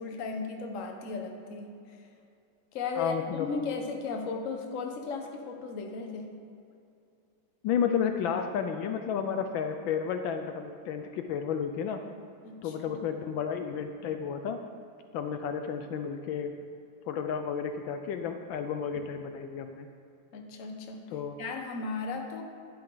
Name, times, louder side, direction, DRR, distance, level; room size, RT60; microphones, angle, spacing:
voice 1, 0.0-2.1 2.7-6.4 12.4-13.0 20.3-22.4, left 4 dB, 45° left, 3 dB, 1.2 m, -36 dB
voice 2, 3.0-3.5 7.6-12.0 12.6-14.6 15.1-16.5 17.1-19.9 21.1-21.4, left 7 dB, 75° left, 6 dB, 1.3 m, -32 dB
11.5 x 11.0 x 3.9 m, 2.6 s
omnidirectional pair, 2.2 m